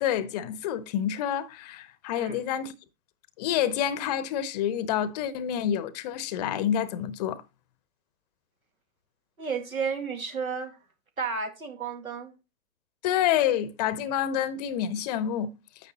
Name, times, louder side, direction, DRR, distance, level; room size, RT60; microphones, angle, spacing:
voice 1, 0.0-2.7 3.4-7.4 13.0-15.5, left 10 dB, 30° left, 0.7 m, -28 dB
voice 2, 9.4-10.8 11.2-12.3, right 5 dB, 80° right, 1.9 m, -32 dB
9.6 x 6.8 x 2.8 m
figure-of-eight pair, 120°, 41 cm